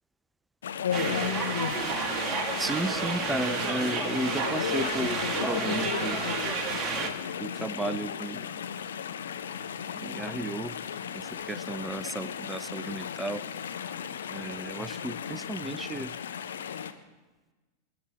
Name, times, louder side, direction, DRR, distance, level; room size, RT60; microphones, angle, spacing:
Chatter / Stream, 0.6-16.9, left 8 dB, 65° left, 0.9 m, -35 dB
sound 1, 0.9-7.1, right 4 dB, 25° right, 1.7 m, -31 dB
voice 1, 2.6-6.2 6.9-8.5 9.9-10.8 11.1-13.4 14.3-16.1, right 2 dB, 5° right, 15 dB, 0.6 m, -34 dB
27.0 x 11.0 x 3.5 m, 1.2 s
figure-of-eight pair, 90°, 0 cm